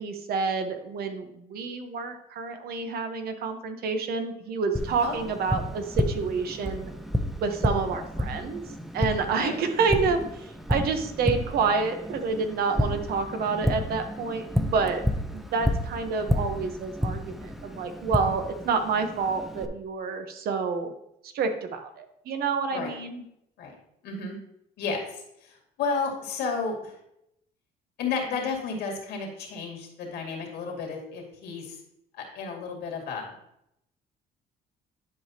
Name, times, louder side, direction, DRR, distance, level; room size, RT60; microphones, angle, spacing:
voice 1, 0.0-6.9 7.4-8.6 8.9-15.0 15.3-20.9 21.2-23.2, right 4 dB, 65° right, 7 dB, 1.0 m, -28 dB
Tap, 4.8-19.7, equal, ahead, 0.6 m, -31 dB
voice 2, 24.0-24.4 24.8-27.0 28.0-31.8 32.2-33.3, left 5 dB, 75° left, 1 dB, 2.4 m, -32 dB
10.5 x 5.0 x 2.9 m, 0.78 s
cardioid pair, 110°, 17 cm